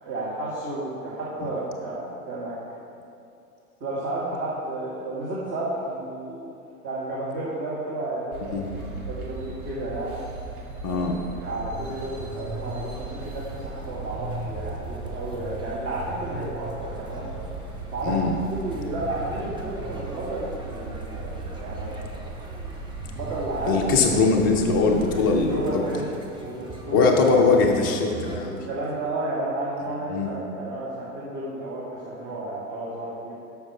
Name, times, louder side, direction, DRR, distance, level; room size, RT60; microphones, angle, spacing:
voice 1, 0.0-2.5 3.8-6.6 6.8-10.2 10.9-17.3 17.9-18.2 18.5-22.1 23.1-23.8 25.1-26.1 26.4-27.6 28.4-33.3, right 2 dB, 30° right, -7 dB, 1.9 m, -32 dB
sound 1, 8.3-25.5, right 3 dB, 65° right, 2.2 m, -38 dB
voice 2, 10.8-11.1 18.0-18.3 23.7-25.8 26.9-28.6 30.1-30.3, left 4 dB, 15° left, 2 dB, 0.3 m, -21 dB
sound 2, 11.7-28.4, right 2 dB, 10° right, 0.9 m, -39 dB
12.5 x 5.8 x 4.7 m, 2.6 s
figure-of-eight pair, 95°, 46 cm